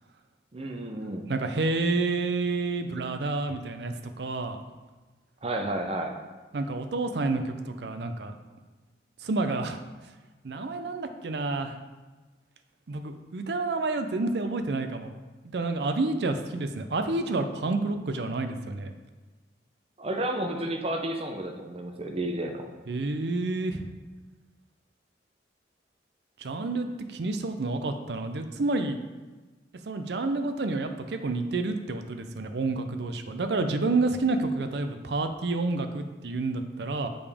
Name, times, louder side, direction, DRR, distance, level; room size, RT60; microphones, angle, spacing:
voice 1, 0.5-1.3 5.4-6.2 20.0-22.7, right 1 dB, 35° right, 3 dB, 0.7 m, -31 dB
voice 2, 1.3-4.6 6.5-8.3 9.2-9.8 10.4-11.8 12.9-15.1 15.4-18.9 22.9-23.9 26.4-29.0 29.9-37.1, right 3 dB, 75° right, 7 dB, 0.5 m, -29 dB
6.9 x 5.1 x 3.6 m, 1.2 s
head